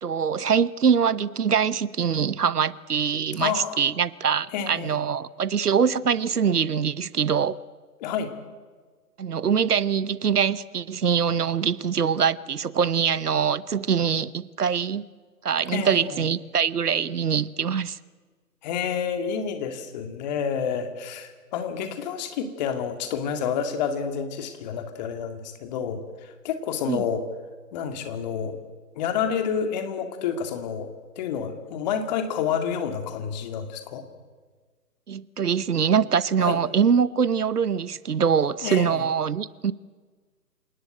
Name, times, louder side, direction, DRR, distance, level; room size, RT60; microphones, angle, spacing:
voice 1, 0.0-7.6 9.2-15.1 15.4-18.0 26.9-27.0 35.1-39.7, right 7 dB, 70° right, 1.0 m, -23 dB
voice 2, 3.4-3.8 4.5-4.9 8.0-8.3 15.7-16.2 18.6-27.2 27.7-28.6 29.0-34.0 36.4-36.6 38.6-39.0, left 7 dB, 25° left, 2.3 m, -29 dB
27.5 x 19.0 x 8.9 m
figure-of-eight pair, 140°, 48 cm